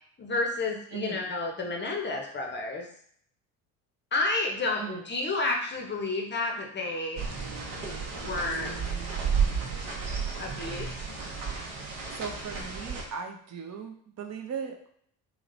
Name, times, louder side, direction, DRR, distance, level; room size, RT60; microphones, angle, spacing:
voice 1, 0.2-2.9 4.1-7.2 8.2-8.7 10.1-10.9, left 3 dB, 25° left, 2 dB, 0.7 m, -31 dB
voice 2, 0.9-1.3 4.8-5.0 11.7-11.8 12.2-14.9, right 6 dB, 35° right, 4 dB, 0.6 m, -38 dB
sound 1, 7.2-13.0, right 6 dB, 60° right, 1.0 m, -32 dB
3.1 x 2.9 x 2.6 m, 0.63 s
hypercardioid pair, 55°, 47 cm